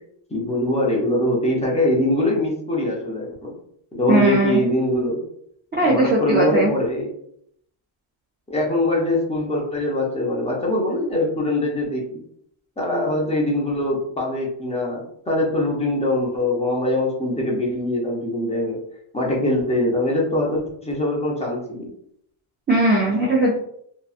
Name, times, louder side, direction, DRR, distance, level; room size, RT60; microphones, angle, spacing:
voice 1, 0.3-3.5 3.9-5.2 5.8-7.1 8.5-12.2 12.8-18.8 19.1-21.9, left 1 dB, 15° left, -3 dB, 0.6 m, -23 dB
voice 2, 4.1-4.6 5.7-6.7 22.7-23.5, right 1 dB, 25° right, -5 dB, 0.4 m, -18 dB
2.7 x 2.2 x 2.4 m, 0.69 s
cardioid pair, 135°, 48 cm